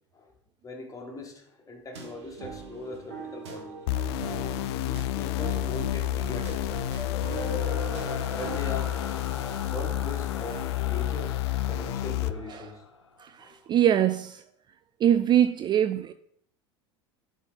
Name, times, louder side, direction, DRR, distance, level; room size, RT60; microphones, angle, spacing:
voice 1, 0.6-3.8 4.7-6.9 8.1-9.0 9.4-11.3 11.7-12.8 13.4-13.6, left 2 dB, 25° left, 1.9 m, -40 dB
sound 1, 1.9-8.6, right 3 dB, 75° right, 1.3 m, -41 dB
sound 2, 3.9-12.3, left 13 dB, 65° left, 0.4 m, -30 dB
sound 3, 5.9-13.2, left 4 dB, 90° left, 0.8 m, -39 dB
voice 2, 13.2-14.4 15.0-16.1, right 10 dB, 30° right, 0.4 m, -23 dB
11.0 x 4.1 x 3.9 m
hypercardioid pair, 75°, 15 cm